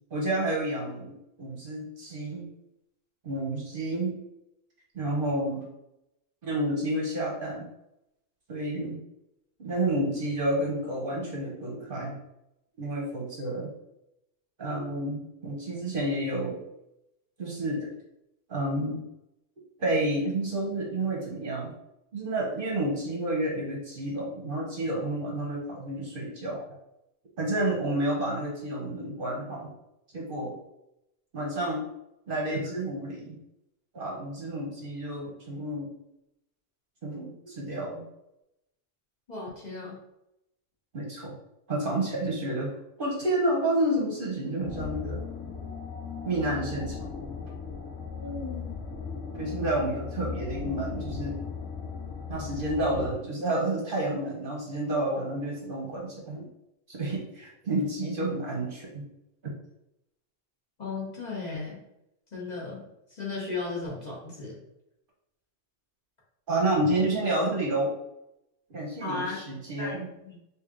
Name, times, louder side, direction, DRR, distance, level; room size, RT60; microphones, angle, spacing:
voice 1, 0.1-2.5 3.2-4.1 4.9-5.6 6.4-7.6 8.5-9.0 9.6-12.2 12.8-13.7 14.6-16.6 17.4-17.9 18.5-19.0 19.8-21.7 22.1-26.7 27.4-29.7 30.1-30.6 31.3-31.9 32.3-33.3 33.9-35.9 37.0-38.0 40.9-41.4 41.7-45.2 46.2-47.1 49.3-51.4 52.3-56.5 56.9-59.1 66.5-67.9 68.7-70.1, right 1 dB, 50° right, -2 dB, 0.9 m, -30 dB
voice 2, 39.3-40.0 48.2-48.8 60.8-61.8 62.3-64.6 69.0-69.4 69.8-70.4, left 3 dB, 35° left, -5 dB, 1.0 m, -36 dB
sound 1, 44.6-53.1, left 5 dB, 85° left, 1.0 m, -37 dB
3.2 x 2.7 x 3.7 m, 0.86 s
omnidirectional pair, 1.3 m